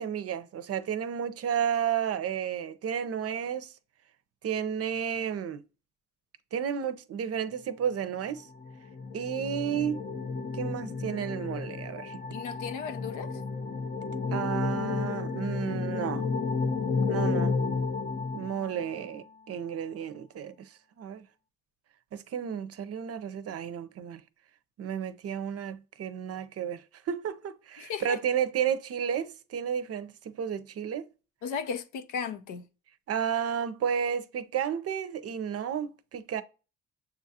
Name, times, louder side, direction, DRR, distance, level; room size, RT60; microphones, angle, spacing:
voice 1, 0.0-3.7 4.4-5.6 6.5-8.5 9.1-10.0 10.5-12.2 14.3-16.3 17.1-17.6 18.3-21.2 22.1-24.2 24.8-31.0 33.1-36.4, right 8 dB, 50° right, 0.6 m, -32 dB
sound 1, 8.4-19.1, left 4 dB, 35° left, 0.6 m, -32 dB
voice 2, 12.3-13.4 27.8-28.2 31.4-32.6, left 6 dB, 85° left, 0.7 m, -35 dB
6.8 x 2.4 x 2.7 m
cardioid pair, 90°, 30 cm